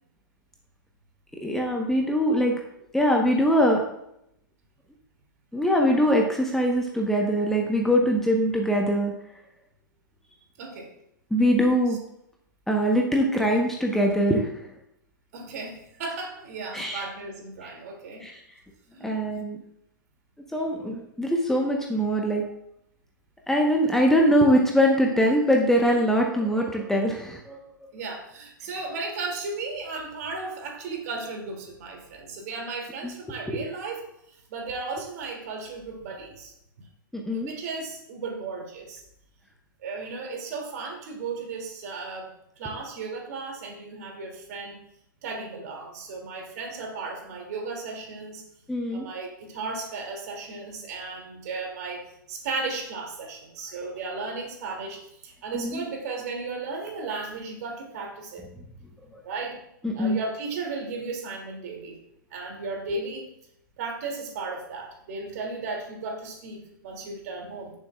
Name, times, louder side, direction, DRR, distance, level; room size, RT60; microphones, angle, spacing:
voice 1, 1.3-2.6 2.9-3.8 5.5-9.1 11.3-12.0 12.7-14.6 16.7-17.0 18.2-18.4 19.0-19.6 20.5-22.4 23.5-27.9 33.5-33.6 37.1-37.5 48.7-49.1 55.5-55.8 59.1-59.2 59.8-60.2, equal, 5° left, 0 dB, 1.1 m, -23 dB
voice 2, 10.6-10.9 15.3-18.3 18.9-19.1 27.9-34.1 34.5-36.9 37.3-39.0 39.8-44.8 45.2-48.4 48.9-58.5 59.2-59.6 59.9-62.0 62.3-63.3 63.8-67.7, right 3 dB, 50° right, 1 dB, 2.7 m, -35 dB
15.0 x 7.1 x 2.4 m, 0.78 s
figure-of-eight pair, 110°, 11 cm